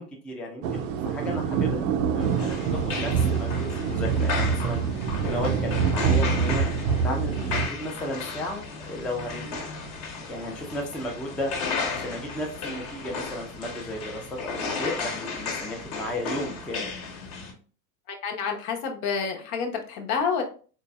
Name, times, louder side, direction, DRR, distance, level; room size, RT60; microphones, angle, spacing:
voice 1, 0.0-4.8 5.2-6.7 7.0-9.7 10.3-11.5 11.9-16.9 17.2-17.3, left 1 dB, ahead, -1 dB, 0.5 m, -34 dB
sound 1, 0.6-7.7, right 6 dB, 50° right, 0.6 m, -25 dB
sound 2, 2.2-17.5, left 4 dB, 45° left, 1.2 m, -34 dB
voice 2, 18.1-20.4, left 6 dB, 60° left, 3 dB, 1.1 m, -28 dB
4.1 x 3.1 x 2.3 m, 0.39 s
hypercardioid pair, 100°, 49 cm